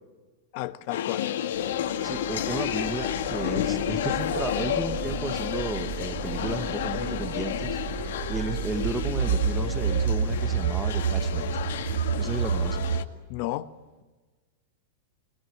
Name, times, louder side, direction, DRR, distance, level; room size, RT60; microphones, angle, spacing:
voice 1, 0.5-1.3 13.3-13.7, left 17 dB, 45° left, 1.1 m, -32 dB
sound 1, 0.9-13.0, left 10 dB, 80° left, 1.8 m, -31 dB
sound 2, 1.7-13.0, right 7 dB, 75° right, 2.6 m, -30 dB
voice 2, 2.0-7.8 8.3-11.5 12.2-12.9, right 3 dB, 10° right, 0.9 m, -34 dB
25.0 x 21.5 x 9.1 m
supercardioid pair, 160°, 0 cm